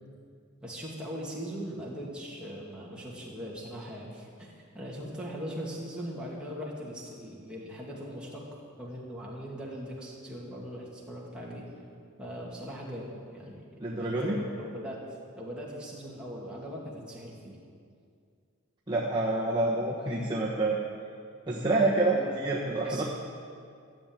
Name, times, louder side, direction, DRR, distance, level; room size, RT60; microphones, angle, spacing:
voice 1, 0.6-8.4 8.8-11.7 12.2-13.7 14.0-15.0 15.3-17.6 22.0-22.4 22.8-23.0, equal, 5° right, -5 dB, 2.5 m, -40 dB
voice 2, 13.8-14.4 18.9-20.8 21.5-23.0, right 2 dB, 20° right, -4 dB, 1.1 m, -27 dB
14.0 x 7.4 x 8.9 m, 2.3 s
head